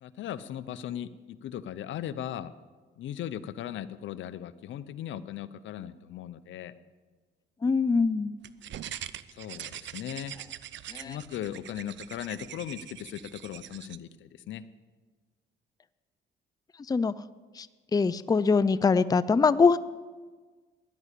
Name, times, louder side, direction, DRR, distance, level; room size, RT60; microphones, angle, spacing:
voice 1, 0.0-2.5 3.0-6.7 9.3-10.3 11.0-14.6, left 10 dB, 75° left, 15 dB, 0.8 m, -38 dB
voice 2, 7.6-8.3 10.9-11.2 16.9-17.1 17.6-17.7 17.9-19.8, left 4 dB, 20° left, 16 dB, 0.5 m, -23 dB
sound 1, 8.4-14.0, right 12 dB, 65° right, 0.6 m, -43 dB
15.5 x 11.0 x 8.3 m, 1.4 s
cardioid pair, 90°, 20 cm